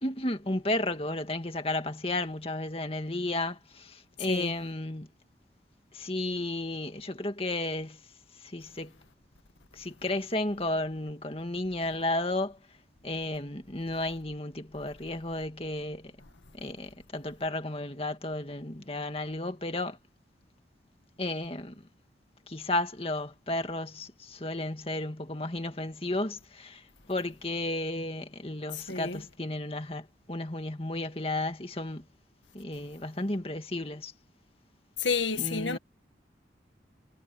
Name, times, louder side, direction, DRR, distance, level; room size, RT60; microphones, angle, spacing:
voice 1, 0.0-5.1 5.9-8.0 8.4-9.0 9.7-12.6 13.0-16.1 16.5-20.0 21.2-21.9 22.5-32.0 32.5-34.1 35.4-35.8, left 2 dB, 30° left, 2.1 m, -33 dB
voice 2, 28.7-29.2 35.0-35.8, left 5 dB, 85° left, 1.6 m, -30 dB
head